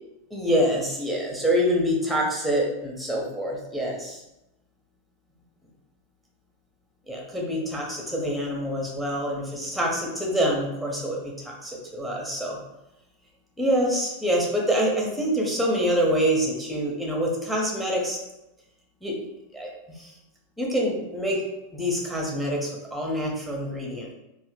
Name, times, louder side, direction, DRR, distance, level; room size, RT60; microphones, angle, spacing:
voice 1, 0.3-4.2 7.1-12.6 13.6-18.2 19.0-19.2 19.5-20.1 20.6-21.4 21.7-24.1, equal, ahead, -2 dB, 0.8 m, -26 dB
3.1 x 2.1 x 3.1 m, 0.91 s
figure-of-eight pair, 90°, 0 cm